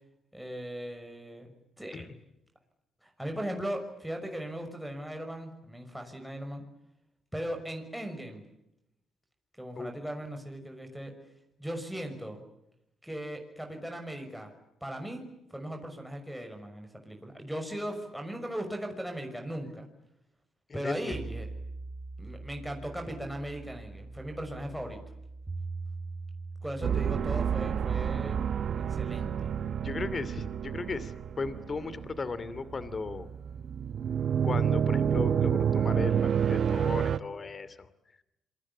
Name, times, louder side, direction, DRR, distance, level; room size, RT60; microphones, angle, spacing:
voice 1, 0.3-1.5 1.8-2.1 3.0-6.6 7.3-8.4 9.6-11.1 11.6-12.4 13.0-14.5 14.8-19.9 20.7-21.5 22.2-25.0 26.6-28.4 28.8-29.5, equal, ahead, 3 dB, 6.0 m, -38 dB
voice 2, 20.7-21.2 29.8-31.1 31.4-33.3 34.4-37.7, left 4 dB, 35° left, 15 dB, 2.7 m, -36 dB
sound 1, 21.1-29.8, right 3 dB, 20° right, 6.4 m, -42 dB
sound 2, 26.8-37.2, right 8 dB, 55° right, 1.0 m, -29 dB
27.0 x 24.0 x 8.6 m, 0.85 s
cardioid pair, 90°, 0 cm